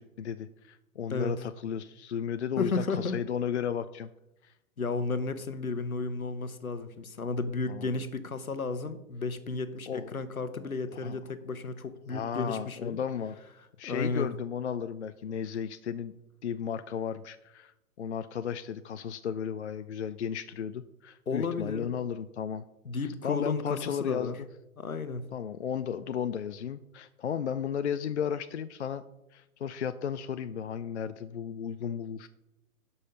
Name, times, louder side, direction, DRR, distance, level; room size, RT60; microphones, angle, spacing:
voice 1, 0.0-4.1 4.4-4.5 7.7-7.9 9.9-10.1 11.0-11.2 12.1-13.4 13.8-16.1 16.4-22.6 23.0-24.5 25.3-29.0 29.3-32.3, left 8 dB, 55° left, 11 dB, 0.5 m, -34 dB
voice 2, 2.6-3.2 4.8-13.0 13.8-14.3 21.3-21.9 22.8-24.3 24.8-25.3, left 4 dB, 75° left, 11 dB, 1.1 m, -33 dB
11.5 x 5.6 x 5.3 m, 0.92 s
figure-of-eight pair, 125°, 42 cm